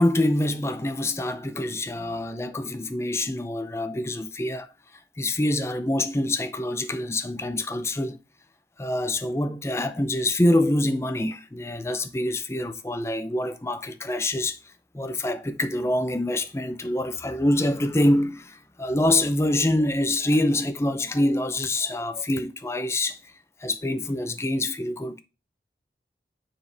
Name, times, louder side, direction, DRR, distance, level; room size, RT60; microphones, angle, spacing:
voice 1, 0.0-4.7 5.2-8.2 8.8-14.6 14.9-23.2 23.6-25.2, left 1 dB, 15° left, 0.5 m, -25 dB
7.4 x 4.7 x 3.3 m
head